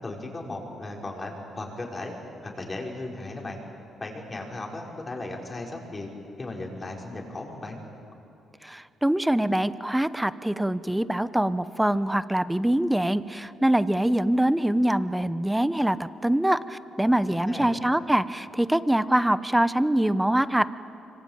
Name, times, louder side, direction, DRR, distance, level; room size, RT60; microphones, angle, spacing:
voice 1, 0.0-2.1 2.4-3.6 4.0-6.1 6.4-7.8 17.2-17.7, left 2 dB, 25° left, 0 dB, 5.5 m, -36 dB
voice 2, 8.6-20.7, right 1 dB, 5° right, 14 dB, 0.9 m, -24 dB
25.5 x 24.5 x 9.1 m, 2.8 s
cardioid pair, 90°, 0 cm